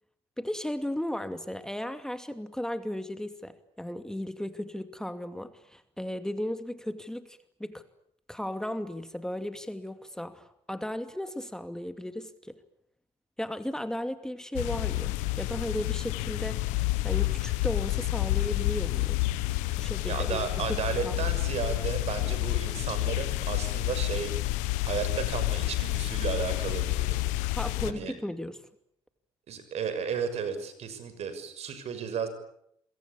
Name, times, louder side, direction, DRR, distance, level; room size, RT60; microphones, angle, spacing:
voice 1, 0.4-7.8 8.3-12.6 13.4-16.7 17.0-19.2 19.8-20.5 21.0-21.3 27.5-28.6, left 1 dB, 5° left, 9 dB, 2.5 m, -35 dB
sound 1, 14.5-27.9, left 18 dB, 80° left, 1.2 m, -29 dB
voice 2, 20.1-24.3 24.8-27.2 27.9-28.1 29.5-32.3, right 7 dB, 60° right, 11 dB, 6.7 m, -33 dB
27.5 x 23.0 x 8.7 m, 0.73 s
hypercardioid pair, 60°, 12 cm